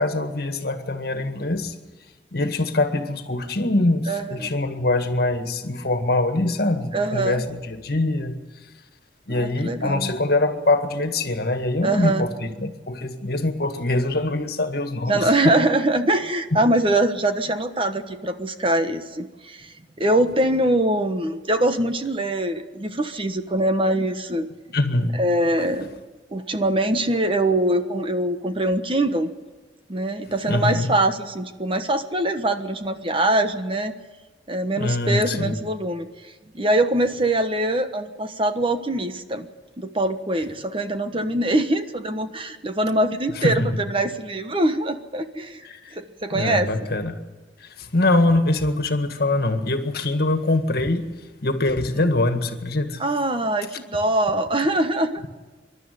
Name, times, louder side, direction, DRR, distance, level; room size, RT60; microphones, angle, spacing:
voice 1, 0.0-1.8 2.3-8.3 9.3-15.5 24.7-25.1 30.5-30.9 34.8-35.6 43.4-43.8 45.6-46.0 46.3-47.2 47.6-53.0, left 2 dB, 60° left, 7 dB, 1.9 m, -23 dB
voice 2, 4.1-4.5 6.9-7.4 9.3-10.1 11.8-12.2 15.1-24.5 25.2-26.0 26.3-29.3 29.9-33.9 34.5-36.1 36.5-39.5 39.8-45.6 45.9-46.7 53.0-55.3, right 1 dB, 30° right, 8 dB, 1.2 m, -23 dB
26.5 x 12.0 x 9.4 m, 1.3 s
head